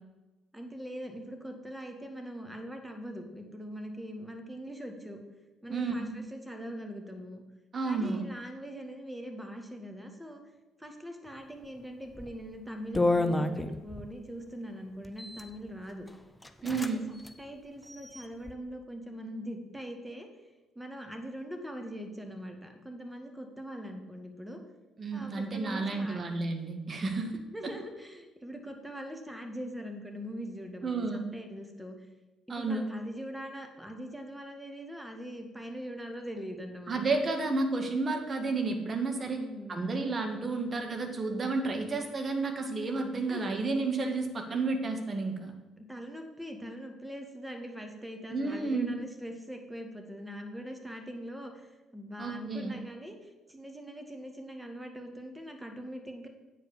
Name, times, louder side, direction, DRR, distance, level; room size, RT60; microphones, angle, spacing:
voice 1, 0.5-5.2 5.6-7.4 7.8-10.4 10.8-16.1 16.6-20.3 20.8-24.6 25.1-26.2 27.5-32.0 32.5-37.0 39.2-40.0 43.3-43.6 44.5-44.6 45.8-53.2 53.5-56.3, equal, 5° right, 4 dB, 1.9 m, -42 dB
voice 2, 5.7-6.2 7.7-8.3 16.6-17.1 25.0-27.7 30.8-31.2 32.5-32.9 36.9-39.4 39.7-45.5 48.3-49.0 52.2-52.7, right 3 dB, 40° right, 4 dB, 1.7 m, -31 dB
sound 1, 12.1-12.4 12.9-14.1 15.0-15.5 16.1-16.2 16.4-16.9 17.2-17.3 17.8-18.5, left 2 dB, 10° left, 0.8 m, -30 dB
8.7 x 5.1 x 7.2 m, 1.1 s
hypercardioid pair, 50°, 0 cm